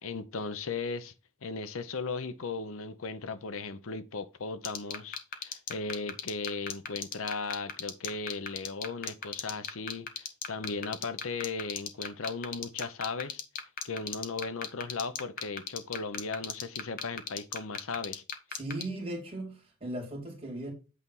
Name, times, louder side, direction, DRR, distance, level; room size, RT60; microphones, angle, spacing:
voice 1, 0.0-1.1 1.4-13.4 13.8-18.2, left 4 dB, 70° left, 0.7 m, -37 dB
sound 1, 4.6-18.8, left 7 dB, 40° left, 1.0 m, -34 dB
voice 2, 18.5-20.7, right 1 dB, 25° right, 2.5 m, -37 dB
8.4 x 3.4 x 5.4 m
head